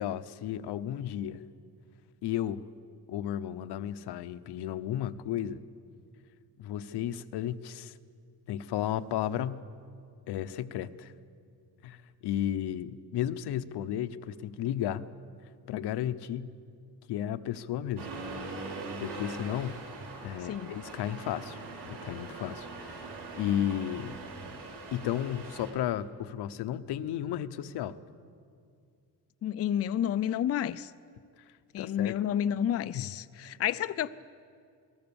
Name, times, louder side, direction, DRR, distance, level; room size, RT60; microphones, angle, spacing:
voice 1, 0.0-1.4 2.2-2.6 3.1-5.6 6.6-7.9 8.5-9.6 10.3-11.1 11.8-15.1 15.7-16.6 17.1-18.1 18.6-19.8 20.2-21.6 21.8-23.1 23.3-24.2 24.9-28.0 31.8-32.2 32.9-33.1, left 11 dB, 90° left, 0.9 m, -33 dB
Accelerating revving vroom, 18.0-25.7, right 3 dB, 80° right, 6.1 m, -42 dB
voice 2, 29.4-30.9 31.7-34.1, left 10 dB, 40° left, 0.5 m, -30 dB
29.0 x 19.5 x 7.1 m
cardioid pair, 160°, 39 cm